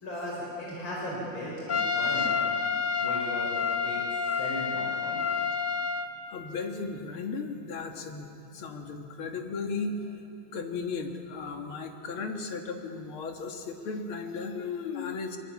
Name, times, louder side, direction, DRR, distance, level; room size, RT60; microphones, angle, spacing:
voice 1, 0.0-5.2, equal, 75° left, -5 dB, 5.6 m, -37 dB
Trumpet, 1.7-6.1, left 5 dB, 55° left, 0.5 m, -29 dB
voice 2, 6.3-10.0 10.5-15.4, left 4 dB, 90° left, 4 dB, 2.5 m, -35 dB
24.0 x 22.5 x 8.5 m, 2.8 s
omnidirectional pair, 2.3 m